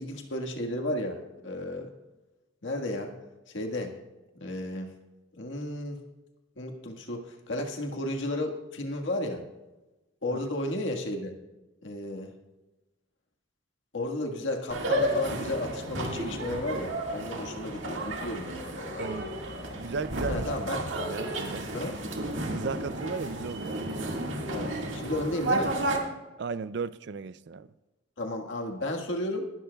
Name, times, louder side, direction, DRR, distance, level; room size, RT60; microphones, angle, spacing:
voice 1, 0.0-1.9 2.6-3.2 3.5-4.0 4.3-4.9 5.3-6.0 6.6-9.4 10.2-11.3 11.8-12.3 13.9-19.1 20.3-20.9 21.7-22.0 24.5-25.8 28.2-29.5, left 1 dB, 80° left, 1.6 m, -33 dB
sound 1, 14.7-26.0, right 1 dB, 90° right, 1.9 m, -32 dB
voice 2, 19.0-19.3 19.8-21.7 22.4-24.0 26.4-27.7, right 5 dB, 65° right, 0.4 m, -36 dB
19.0 x 12.0 x 2.3 m
head